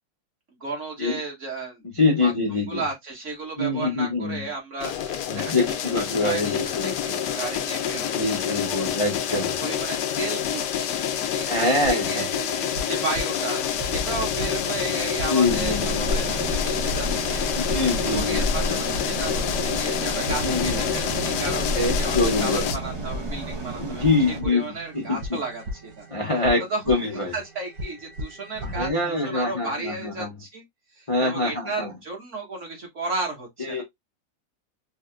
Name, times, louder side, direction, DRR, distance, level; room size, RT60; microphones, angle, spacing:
voice 1, 0.6-1.8 2.2-2.3 2.7-5.6 5.9-8.9 9.3-17.5 18.0-26.1 26.7-27.0 27.3-30.6 30.9-33.8, right 3 dB, 40° right, 1.7 m, -34 dB
voice 2, 1.8-2.8 3.6-4.5 5.3-7.2 8.0-9.6 11.4-12.3 15.3-16.0 17.6-18.7 20.4-20.9 21.7-22.7 23.8-25.2 26.1-26.6 26.9-27.3 28.6-30.3 31.1-31.9 33.6-33.8, left 3 dB, 50° left, 0.3 m, -25 dB
sound 1, 4.8-22.8, left 9 dB, 70° left, 1.1 m, -28 dB
sound 2, 11.8-28.9, equal, 65° right, 1.4 m, -37 dB
sound 3, 15.4-24.4, equal, 25° right, 0.5 m, -30 dB
4.7 x 2.8 x 2.3 m
omnidirectional pair, 2.1 m